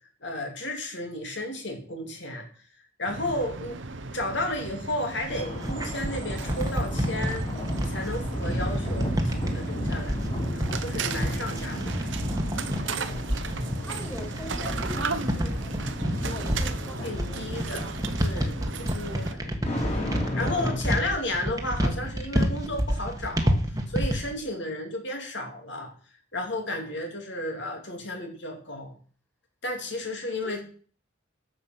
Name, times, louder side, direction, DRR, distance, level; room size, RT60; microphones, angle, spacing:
voice 1, 0.2-2.5 3.0-3.8 4.1-10.2 10.5-12.1 17.0-23.6 23.9-25.9 26.3-28.9 29.6-30.6, left 1 dB, 65° left, 3 dB, 2.8 m, -33 dB
sound 1, 3.1-19.3, right 4 dB, 70° right, 1.1 m, -36 dB
sound 2, 5.2-24.3, equal, 20° right, 1.5 m, -29 dB
sound 3, 5.3-20.8, left 1 dB, 30° left, 3.7 m, -34 dB
voice 2, 13.5-17.7 20.8-21.1 30.3-30.6, left 1 dB, 10° left, 2 dB, 2.8 m, -43 dB
10.5 x 7.4 x 6.2 m, 0.43 s
head